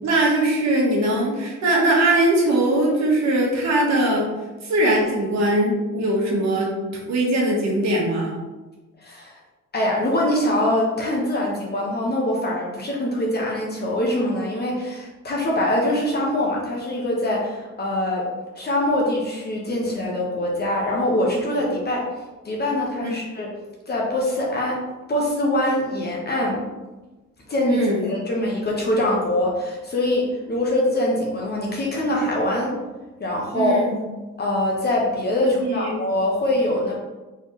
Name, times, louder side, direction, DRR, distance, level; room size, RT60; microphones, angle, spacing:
voice 1, 0.0-4.3 4.6-6.7 7.1-8.4 23.0-23.2 27.7-28.0 33.5-34.0 35.6-35.9, right 1 dB, 55° right, -2 dB, 1.4 m, -21 dB
voice 2, 9.0-9.4 9.7-18.2 18.6-22.0 22.4-23.5 23.9-24.8 25.1-26.6 27.5-32.7 33.2-33.8 34.4-36.9, left 1 dB, 30° left, -3 dB, 1.0 m, -23 dB
4.5 x 3.5 x 3.1 m, 1.2 s
cardioid pair, 115°, 32 cm